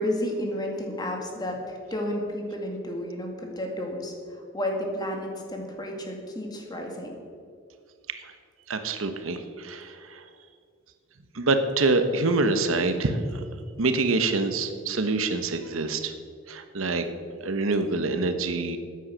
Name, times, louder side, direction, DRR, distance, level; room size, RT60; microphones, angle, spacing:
voice 1, 0.0-4.1 4.5-7.1, left 1 dB, 20° left, 1 dB, 2.1 m, -31 dB
voice 2, 8.7-10.3 11.3-13.4 13.8-16.1 16.5-17.1 17.4-18.8, right 3 dB, 80° right, 8 dB, 1.0 m, -26 dB
13.0 x 9.4 x 6.2 m, 2.2 s
head